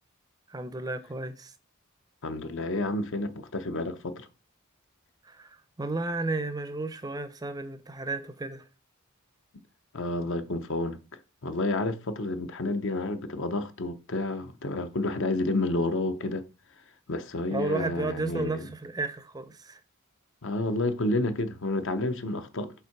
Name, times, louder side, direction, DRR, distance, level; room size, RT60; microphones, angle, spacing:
voice 1, 0.5-1.5 5.3-8.6 17.5-19.8, right 3 dB, 15° right, 0.5 m, -33 dB
voice 2, 2.2-4.3 9.9-11.0 11.4-16.4 17.1-18.7 20.4-22.7, left 2 dB, 60° left, 0.8 m, -30 dB
5.7 x 3.6 x 5.8 m
head